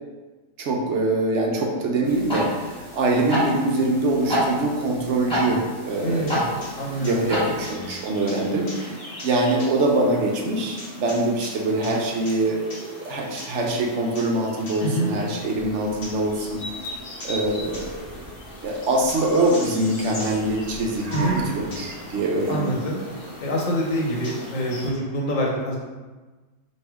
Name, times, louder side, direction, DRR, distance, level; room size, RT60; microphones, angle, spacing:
voice 1, 0.6-6.4 7.0-16.7 17.2-18.2 18.6-22.8, right 2 dB, 70° right, -1 dB, 0.9 m, -24 dB
sound 1, 2.0-7.7, equal, 5° left, 1.0 m, -28 dB
sound 2, 5.9-24.9, left 1 dB, 45° left, 1.0 m, -39 dB
voice 2, 6.0-7.3 14.8-15.1 21.1-21.4 22.5-23.0 23.4-25.8, equal, 80° left, -3 dB, 1.3 m, -26 dB
Car, 15.5-24.7, right 2 dB, 15° right, 0.6 m, -41 dB
3.2 x 2.8 x 4.5 m, 1.3 s
omnidirectional pair, 1.3 m